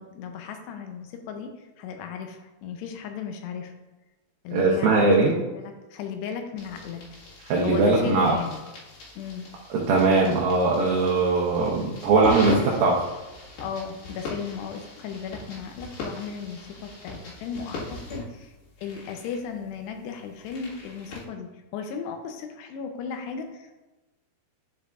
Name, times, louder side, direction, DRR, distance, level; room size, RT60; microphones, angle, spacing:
voice 1, 0.0-3.7 4.4-7.0 7.6-8.6 9.2-9.5 13.6-18.5 18.8-23.8, left 6 dB, 80° left, 5 dB, 2.7 m, -36 dB
voice 2, 4.5-5.4 7.5-8.3 9.7-13.0, right 3 dB, 75° right, -4 dB, 2.2 m, -20 dB
sound 1, 6.6-21.3, left 2 dB, 65° left, 3.4 m, -41 dB
10.5 x 5.5 x 2.4 m, 1.1 s
omnidirectional pair, 5.0 m